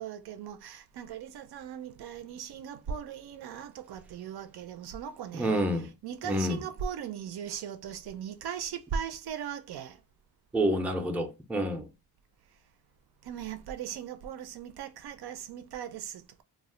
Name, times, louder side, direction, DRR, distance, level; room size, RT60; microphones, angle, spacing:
voice 1, 0.0-5.6 6.0-10.0 13.3-16.4, right 8 dB, 75° right, 0.5 m, -38 dB
voice 2, 5.3-5.9 6.2-6.6 10.5-11.9, right 1 dB, 5° right, 0.4 m, -28 dB
2.3 x 2.1 x 3.6 m
wide cardioid pair, 125°, 39 cm